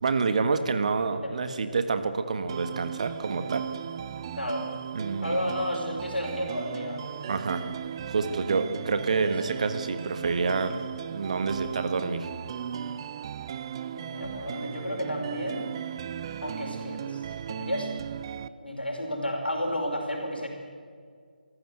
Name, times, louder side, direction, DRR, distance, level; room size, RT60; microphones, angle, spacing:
voice 1, 0.0-3.7 4.9-5.4 7.3-7.6 8.1-10.8 11.1-12.3, right 4 dB, 45° right, 9 dB, 1.6 m, -28 dB
voice 2, 1.1-1.6 4.4-4.7 5.2-7.1 13.9-15.7 16.4-17.9 18.6-20.5, equal, 85° left, 1 dB, 5.1 m, -32 dB
sound 1, 2.5-18.5, right 9 dB, 30° right, 0.6 m, -37 dB
24.0 x 15.0 x 8.0 m, 2.1 s
figure-of-eight pair, 150°, 5 cm